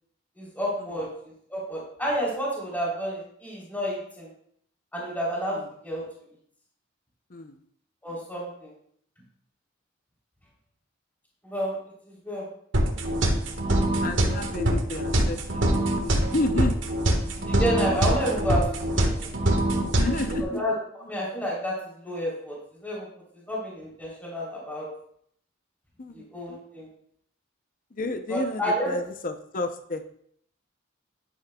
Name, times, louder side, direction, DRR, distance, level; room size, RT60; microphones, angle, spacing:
voice 1, 0.4-1.1 1.5-4.3 4.9-6.0 8.0-8.7 11.4-11.8 12.1-12.5 17.4-19.3 20.4-20.8 21.1-22.5 22.8-23.1 23.5-24.9 26.1-26.9 28.3-29.0, equal, 10° left, -6 dB, 3.3 m, -30 dB
sound 1, 12.7-20.4, right 1 dB, 70° right, 1.5 m, -24 dB
voice 2, 14.0-16.7 19.9-20.4 26.0-26.2 27.9-30.0, left 2 dB, 45° left, 7 dB, 0.6 m, -31 dB
11.0 x 11.0 x 2.3 m, 0.67 s
head